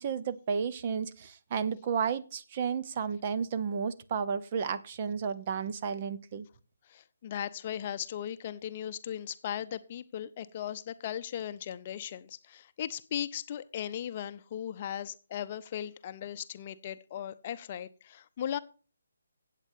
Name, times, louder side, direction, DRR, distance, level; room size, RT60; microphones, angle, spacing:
voice 1, 0.0-6.4, right 6 dB, 35° right, 0.8 m, -32 dB
voice 2, 6.9-18.6, left 10 dB, 35° left, 0.6 m, -37 dB
16.0 x 8.3 x 2.7 m
figure-of-eight pair, 145°, 0 cm